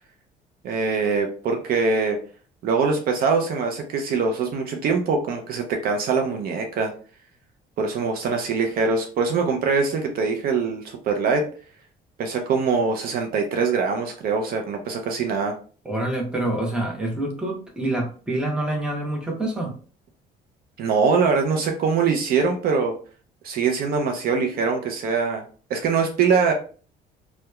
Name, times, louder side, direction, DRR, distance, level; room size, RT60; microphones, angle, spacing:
voice 1, 0.6-2.2 2.6-6.9 7.8-11.5 12.2-15.5 20.8-22.9 23.4-25.4 25.7-26.5, right 5 dB, 60° right, 3 dB, 0.5 m, -23 dB
voice 2, 15.8-19.7, right 1 dB, 5° right, -1 dB, 0.8 m, -26 dB
2.8 x 2.1 x 2.2 m, 0.40 s
cardioid pair, 110°, 17 cm